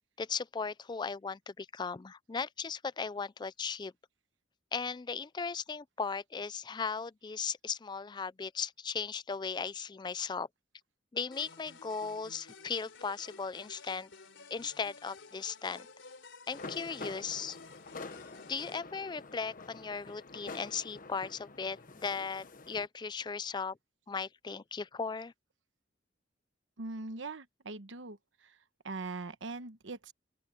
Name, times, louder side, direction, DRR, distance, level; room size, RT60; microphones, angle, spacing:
voice 1, 0.2-3.9 4.7-10.5 11.1-14.1 14.5-15.9 16.5-17.6 18.5-23.8 24.1-25.3, left 5 dB, 25° left, 0.4 m, -37 dB
sound 1, 11.3-18.8, left 4 dB, 80° left, 3.3 m, -53 dB
sound 2, 16.5-22.9, left 3 dB, 45° left, 1.2 m, -47 dB
voice 2, 26.8-28.6 28.8-30.1, right 3 dB, 85° right, 1.1 m, -41 dB
open air
head